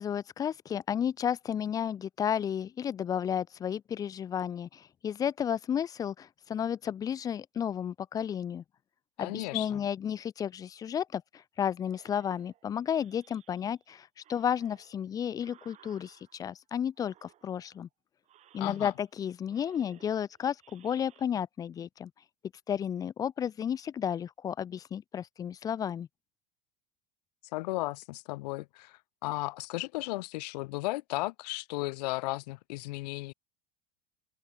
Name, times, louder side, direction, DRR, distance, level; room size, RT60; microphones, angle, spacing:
voice 1, 0.0-8.6 9.2-11.2 11.6-17.9 18.5-22.1 22.7-26.1, left 8 dB, 20° left, 0.4 m, -32 dB
voice 2, 9.2-9.8 18.6-18.9 27.5-33.3, left 21 dB, 80° left, 0.8 m, -35 dB
sound 1, 11.8-13.8 14.2-16.6 16.9-17.8 18.2-19.2 19.5-21.2, right 12 dB, 35° right, 4.3 m, -61 dB
open air
supercardioid pair, 155°, 21 cm